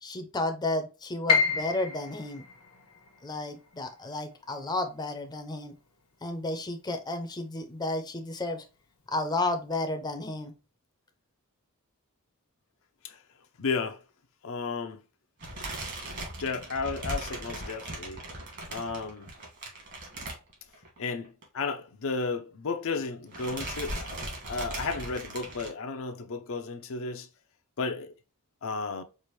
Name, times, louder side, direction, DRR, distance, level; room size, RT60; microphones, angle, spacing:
voice 1, 0.0-2.4 3.2-5.7 6.2-8.6 9.1-10.5, left 2 dB, 20° left, 0.6 m, -32 dB
Piano, 1.3-7.2 7.5-8.7 9.1-9.2 9.9-10.2, left 5 dB, 80° left, 0.9 m, -32 dB
voice 2, 13.6-14.0 14.4-15.0 16.4-18.2 18.7-19.3 21.0-24.1 24.4-27.3 27.8-28.2 28.6-29.0, left 4 dB, 65° left, 0.5 m, -33 dB
sound 1, 15.4-21.0 21.2-21.4 21.7-21.8 22.8-23.0 23.3-25.7, right 1 dB, 55° right, 1.9 m, -38 dB
4.7 x 2.5 x 3.1 m
head